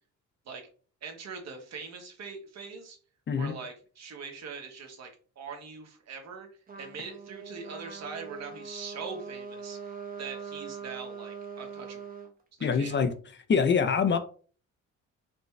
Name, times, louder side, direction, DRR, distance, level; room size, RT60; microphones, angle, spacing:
voice 1, 1.0-3.0 3.3-5.1 5.4-6.5 6.8-12.0 12.6-12.9, right 5 dB, 60° right, 1.3 m, -42 dB
Trumpet, 6.7-12.3, right 6 dB, 30° right, 0.9 m, -42 dB
voice 2, 12.6-13.1 13.5-14.2, left 6 dB, 40° left, 0.6 m, -24 dB
5.2 x 2.3 x 3.2 m
cardioid pair, 90°, 30 cm